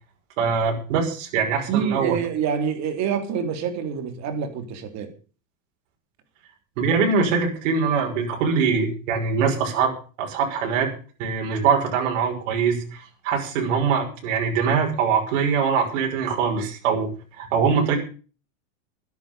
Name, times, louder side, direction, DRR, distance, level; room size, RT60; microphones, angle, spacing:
voice 1, 0.4-2.2 6.8-9.9 10.2-10.9 11.2-17.1 17.4-18.0, right 6 dB, 65° right, 1 dB, 5.8 m, -23 dB
voice 2, 1.7-5.1, right 7 dB, 40° right, 7 dB, 3.6 m, -26 dB
13.5 x 10.5 x 6.9 m, 0.38 s
supercardioid pair, 125°, 40 cm